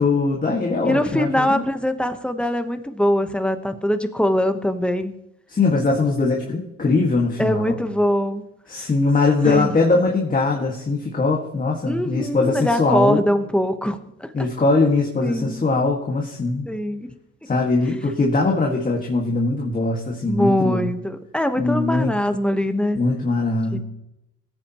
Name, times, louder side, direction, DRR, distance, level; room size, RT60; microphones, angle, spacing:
voice 1, 0.0-1.7 5.5-7.7 8.7-13.2 14.3-16.7 17.5-20.9 21.6-22.2 22.9-23.8, left 3 dB, 25° left, -1 dB, 1.8 m, -21 dB
voice 2, 0.8-5.2 7.4-8.4 9.4-9.7 11.9-14.5 15.2-15.6 16.6-17.1 20.3-23.0 23.7-23.8, equal, 5° left, 7 dB, 1.1 m, -22 dB
19.0 x 8.8 x 3.0 m, 0.86 s
cardioid pair, 90°, 30 cm